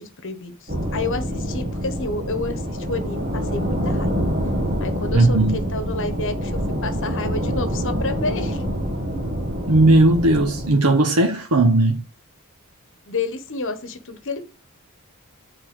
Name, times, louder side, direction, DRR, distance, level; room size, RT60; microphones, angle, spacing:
voice 1, 0.0-4.1 4.8-8.6 13.1-14.4, left 3 dB, 60° left, 1.3 m, -30 dB
sound 1, 0.7-10.7, equal, 40° right, 1.7 m, -26 dB
voice 2, 5.1-5.6 9.7-12.0, right 2 dB, 85° right, 1.1 m, -16 dB
6.5 x 4.4 x 6.1 m
head